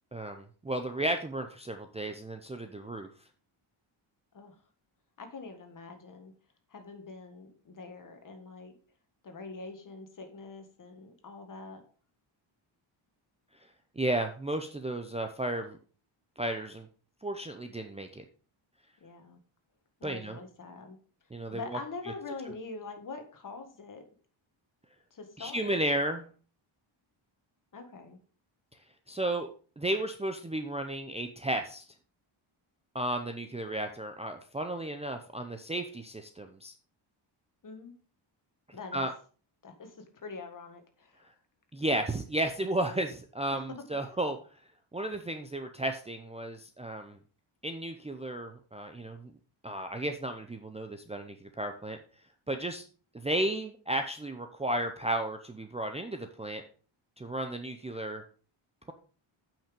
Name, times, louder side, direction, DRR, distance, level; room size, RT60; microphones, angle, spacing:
voice 1, 0.1-3.1 14.0-15.8 16.4-16.9 17.2-18.2 20.0-20.4 21.3-21.6 25.4-26.3 29.1-29.5 29.8-31.8 32.9-36.7 38.9-39.1 41.7-44.4 44.9-47.2 47.6-49.3 49.6-52.0 52.5-52.8 53.1-56.6 57.2-58.2, right 1 dB, 15° right, 6 dB, 0.6 m, -33 dB
voice 2, 5.2-6.3 6.7-8.7 9.2-11.8 19.0-19.4 20.0-21.0 21.5-24.0 25.1-25.8 27.7-28.2 37.6-37.9 38.7-39.1 39.6-41.3 43.5-43.8, left 4 dB, 40° left, 6 dB, 1.9 m, -44 dB
8.5 x 5.9 x 5.2 m, 0.40 s
wide cardioid pair, 155°, 49 cm